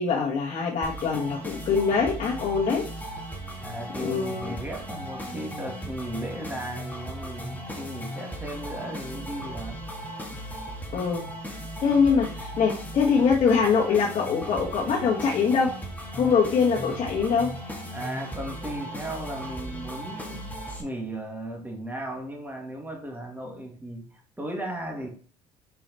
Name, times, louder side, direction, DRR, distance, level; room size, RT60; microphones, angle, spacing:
voice 1, 0.0-2.9 4.0-4.5 10.9-11.3 11.8-15.8 16.2-17.5, left 5 dB, 50° left, -4 dB, 1.5 m, -23 dB
sound 1, 0.8-20.8, equal, 10° left, 1.8 m, -37 dB
voice 2, 3.6-9.8 17.9-20.5 20.8-25.1, right 1 dB, 10° right, 0 dB, 2.0 m, -36 dB
5.0 x 4.8 x 4.0 m, 0.40 s
supercardioid pair, 80°, 15 cm